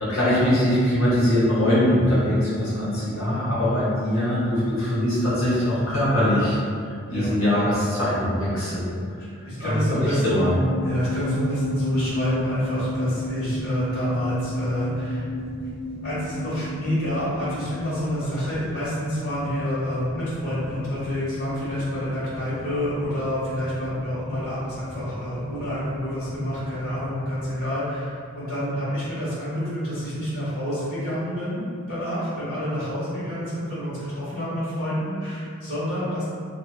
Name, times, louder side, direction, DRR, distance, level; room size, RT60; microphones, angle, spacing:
voice 1, 0.0-6.6 7.1-8.9 9.6-10.5, left 1 dB, 65° left, -10 dB, 0.8 m, -22 dB
voice 2, 9.5-15.2 16.0-36.2, equal, 80° left, -11 dB, 1.2 m, -28 dB
sound 1, 10.4-17.8, equal, 75° right, 0.3 m, -32 dB
sound 2, 10.7-27.7, left 2 dB, ahead, 0.4 m, -40 dB
2.7 x 2.3 x 2.2 m, 2.3 s
head